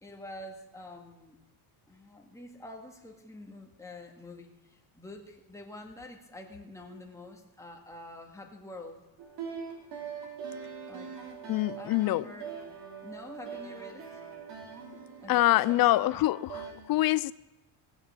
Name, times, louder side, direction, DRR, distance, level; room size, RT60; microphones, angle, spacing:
voice 1, 0.0-1.4 1.9-9.0 10.9-11.2 11.8-12.6 13.0-14.2 15.2-16.4, left 1 dB, 5° left, 2.0 m, -47 dB
sound 1, 9.2-16.7, right 6 dB, 65° right, 3.3 m, -42 dB
voice 2, 11.5-12.2 15.3-17.3, left 16 dB, 55° left, 0.4 m, -25 dB
17.5 x 6.6 x 7.4 m
cardioid pair, 115°, 45 cm